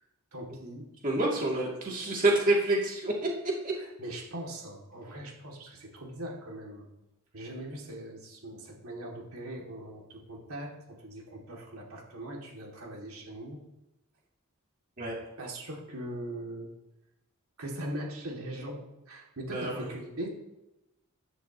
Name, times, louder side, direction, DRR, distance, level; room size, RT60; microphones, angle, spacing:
voice 1, 0.3-0.9 4.0-6.9 7.3-13.6 15.4-16.7 17.6-20.3, right 1 dB, 90° right, -1 dB, 2.5 m, -40 dB
voice 2, 1.0-3.3 3.6-3.7 15.0-15.2 19.5-19.9, right 2 dB, 40° right, -2 dB, 2.7 m, -27 dB
13.5 x 12.5 x 3.0 m, 0.94 s
head